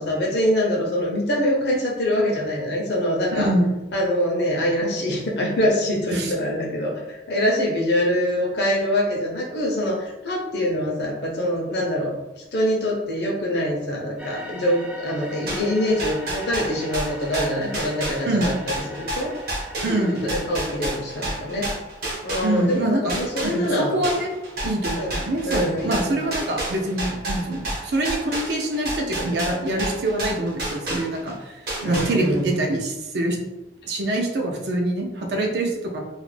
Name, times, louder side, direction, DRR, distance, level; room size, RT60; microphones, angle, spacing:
voice 1, 0.0-3.5 3.9-19.3 19.9-21.7 22.2-24.0 24.9-25.1 25.4-26.3 31.8-32.5, equal, 70° left, -2 dB, 0.6 m, -24 dB
voice 2, 3.3-3.7 6.1-6.3 18.3-18.5 19.8-20.2 22.4-23.2 23.4-24.3 24.6-33.4 33.9-36.0, right 1 dB, 70° right, 1 dB, 0.5 m, -25 dB
sound 1, 14.2-20.5, equal, 5° right, 0.3 m, -41 dB
sound 2, 15.5-22.8 23.1-31.3 31.7-32.5, right 1 dB, 55° right, 0.8 m, -30 dB
2.4 x 2.0 x 3.2 m, 1.0 s
head